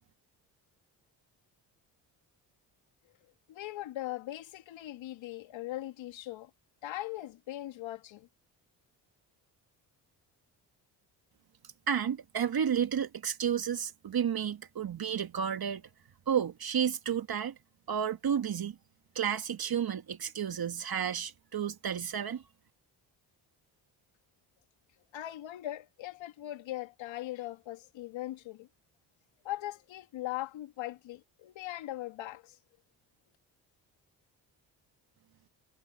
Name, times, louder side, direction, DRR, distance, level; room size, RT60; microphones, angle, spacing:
voice 1, 3.5-6.5 6.8-8.3 25.1-28.7 29.4-32.6, left 15 dB, 75° left, 2.3 m, -40 dB
voice 2, 11.9-15.8 16.3-17.5 17.9-18.8 19.2-22.4, right 8 dB, 50° right, 2.0 m, -31 dB
supercardioid pair, 55°, 47 cm